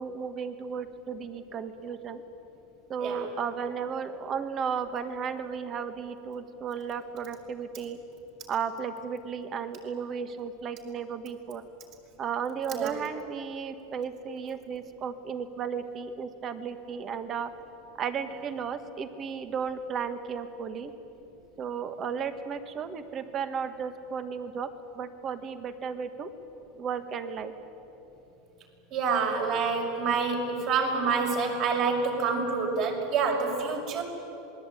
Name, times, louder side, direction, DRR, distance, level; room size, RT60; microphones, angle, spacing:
voice 1, 0.0-2.2 2.9-8.0 8.5-11.6 12.2-17.5 18.0-20.9 21.6-24.7 24.9-26.3 26.8-27.5, right 6 dB, 30° right, 10 dB, 1.6 m, -34 dB
voice 2, 28.9-34.0, right 5 dB, 45° right, 1 dB, 5.6 m, -27 dB
26.5 x 21.0 x 9.2 m, 3.0 s
supercardioid pair, 155°, 0 cm